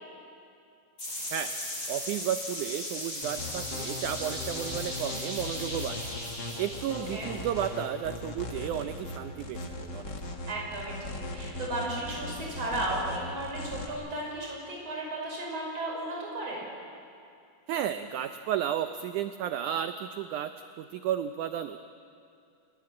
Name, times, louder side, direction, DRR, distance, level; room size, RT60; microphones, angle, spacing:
sound 1, 1.0-7.7, left 1 dB, 25° left, 7.2 m, -37 dB
voice 1, 1.9-6.0 6.6-9.6 9.9-10.1 17.7-21.8, right 10 dB, 85° right, 10 dB, 1.8 m, -33 dB
sound 2, 3.2-13.9, left 2 dB, 40° left, 1.7 m, -39 dB
voice 2, 6.9-7.3 10.5-16.6, right 1 dB, 40° right, -2 dB, 6.5 m, -35 dB
28.0 x 20.5 x 7.7 m, 2.5 s
omnidirectional pair, 4.4 m